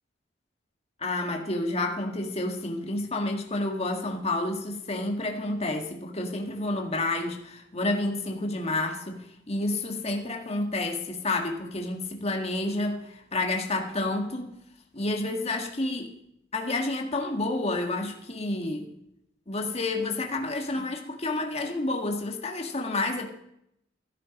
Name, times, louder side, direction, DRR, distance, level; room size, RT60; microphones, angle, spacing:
voice 1, 1.0-14.6 14.9-16.1 16.5-18.9 19.5-23.3, left 2 dB, 35° left, 2 dB, 1.8 m, -30 dB
14.0 x 12.5 x 5.3 m, 0.77 s
head